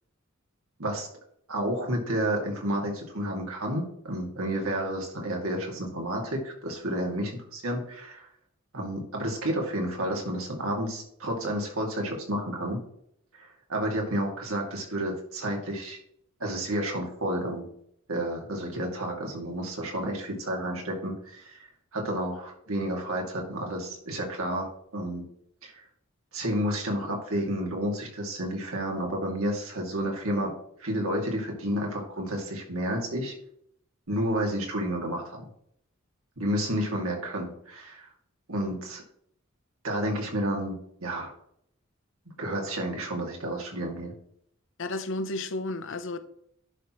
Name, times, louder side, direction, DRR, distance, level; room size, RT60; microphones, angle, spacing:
voice 1, 1.5-8.3 8.7-12.8 13.3-16.0 16.4-17.7 18.1-25.2 25.6-25.8 26.3-30.5 30.8-33.3 34.1-35.4 36.4-38.1 38.5-39.0 39.8-41.3 42.4-44.1, right 1 dB, 85° right, 2.4 m, -31 dB
voice 2, 44.8-46.2, left 2 dB, 65° left, 0.7 m, -32 dB
10.5 x 6.0 x 3.1 m
head